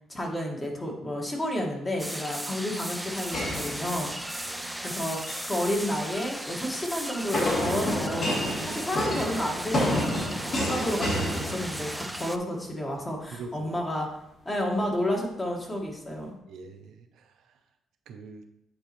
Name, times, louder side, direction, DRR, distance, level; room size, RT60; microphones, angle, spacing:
voice 1, 0.1-4.1 4.8-8.4 8.6-10.1 10.5-14.1 14.4-16.3, left 1 dB, 25° left, 0 dB, 1.5 m, -31 dB
sound 1, 2.0-12.4, right 1 dB, 5° right, 0.4 m, -36 dB
sound 2, 3.3-4.4 5.1-5.6 7.3-12.2, left 1 dB, 55° left, 2.1 m, -29 dB
voice 2, 4.4-4.8 8.6-8.8 13.3-13.7 16.5-17.3 18.1-18.4, right 4 dB, 75° right, 5 dB, 0.6 m, -43 dB
8.8 x 4.1 x 3.0 m, 0.84 s
cardioid pair, 90°, 0 cm